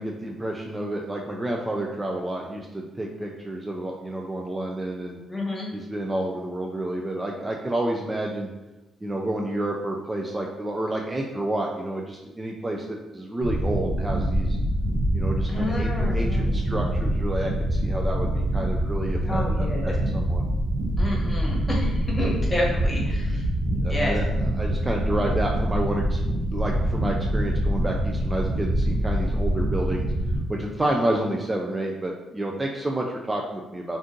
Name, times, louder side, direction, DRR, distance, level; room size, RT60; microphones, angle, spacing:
voice 1, 0.0-5.2 5.7-8.5 9.0-14.6 15.1-20.5 23.8-26.2 26.4-30.1 30.5-34.0, right 1 dB, 20° right, 0 dB, 0.3 m, -29 dB
voice 2, 5.3-5.7 15.5-16.6 19.2-20.0 21.0-23.4 23.9-24.2, left 1 dB, 20° left, -3 dB, 1.0 m, -29 dB
sound 1, 13.4-30.4, right 1 dB, 80° right, 0.8 m, -25 dB
2.5 x 2.5 x 3.6 m, 1.0 s
cardioid pair, 90°, 0 cm